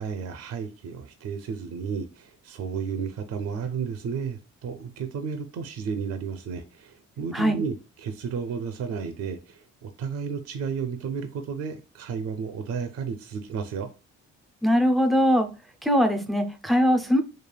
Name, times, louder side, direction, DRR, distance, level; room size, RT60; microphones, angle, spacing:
voice 1, 0.0-13.9, right 6 dB, 60° right, 0.5 m, -32 dB
voice 2, 14.6-15.5 15.8-17.2, equal, ahead, 0.4 m, -21 dB
3.2 x 2.3 x 2.2 m
cardioid pair, 90°, 30 cm